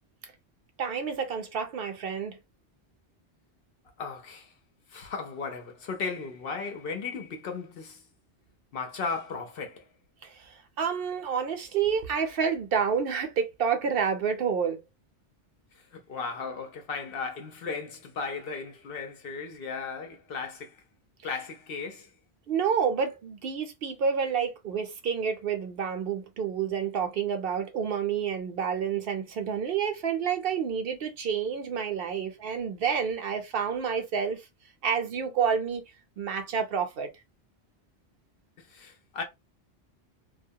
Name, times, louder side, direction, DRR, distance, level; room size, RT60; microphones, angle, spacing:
voice 1, 0.8-2.4 10.2-14.8 22.5-34.5 34.8-35.8 36.2-37.1, right 7 dB, 65° right, 0.7 m, -29 dB
voice 2, 4.0-4.5 4.9-8.0 8.7-9.8 15.9-20.8 21.2-22.1 38.6-39.2, left 4 dB, 60° left, 0.8 m, -36 dB
2.3 x 2.1 x 2.7 m
omnidirectional pair, 1.1 m